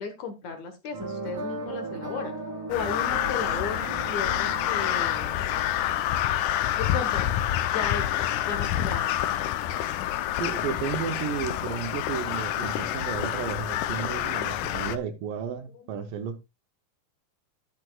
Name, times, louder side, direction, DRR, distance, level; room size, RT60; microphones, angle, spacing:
voice 1, 0.0-2.3 2.7-5.4 6.6-7.4 7.7-9.2 14.0-14.9, left 5 dB, 60° left, 2.3 m, -35 dB
sound 1, 0.9-7.2, right 3 dB, 40° right, 2.7 m, -38 dB
Crow, 2.7-15.0, left 12 dB, 75° left, 1.9 m, -28 dB
voice 2, 10.4-16.4, right 8 dB, 75° right, 2.4 m, -33 dB
12.5 x 9.4 x 2.3 m
omnidirectional pair, 4.2 m